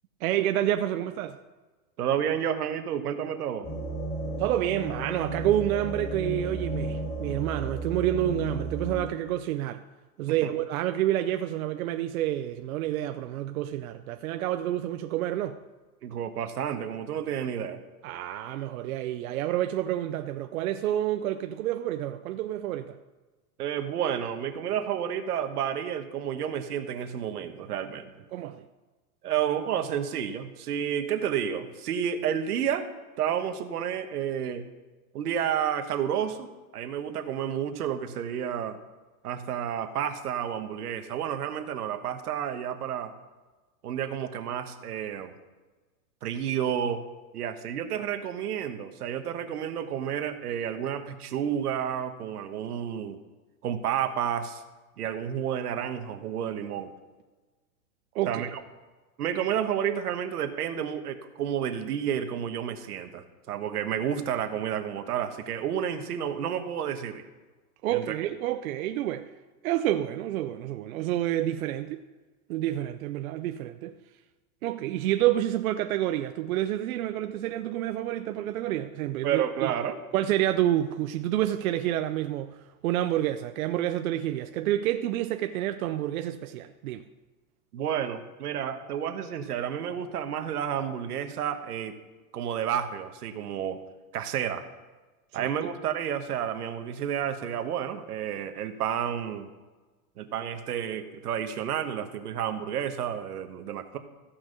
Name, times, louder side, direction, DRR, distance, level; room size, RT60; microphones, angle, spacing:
voice 1, 0.2-1.4 4.4-9.8 10.2-15.6 18.0-23.0 28.3-28.7 58.1-58.4 67.8-69.3 69.6-72.0 72.5-73.9 74.6-79.7 80.1-87.0 95.3-95.5, right 12 dB, 65° right, 0.6 m, -29 dB
voice 2, 2.0-3.7 10.3-10.5 16.0-17.8 23.6-28.2 29.2-32.9 33.2-34.7 35.1-36.5 36.7-38.8 39.2-43.1 43.8-45.4 46.2-47.0 47.3-53.2 53.6-54.6 55.0-56.9 58.3-58.6 59.2-67.2 67.9-68.1 79.2-80.0 87.7-92.0 92.3-93.8 94.1-94.6 95.3-99.5 100.2-104.0, right 9 dB, 90° right, 1.3 m, -30 dB
sound 1, 3.6-9.0, right 2 dB, 20° left, 4.2 m, -33 dB
14.5 x 5.9 x 6.5 m
supercardioid pair, 155°, 45 cm